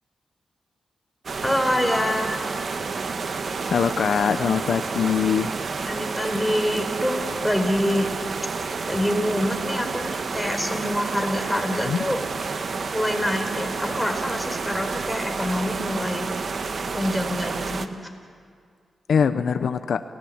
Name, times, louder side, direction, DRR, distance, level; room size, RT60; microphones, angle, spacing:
sound 1, 1.3-17.9, right 4 dB, 60° right, 1.4 m, -30 dB
voice 1, 1.4-2.4 5.9-8.1 8.9-12.2 12.9-16.3 16.9-17.9, equal, ahead, 3 dB, 4.4 m, -26 dB
voice 2, 3.7-5.5 11.9-12.1 19.1-20.0, left 7 dB, 75° left, 10 dB, 0.8 m, -22 dB
29.5 x 16.0 x 8.8 m, 2.1 s
cardioid pair, 75°, 0 cm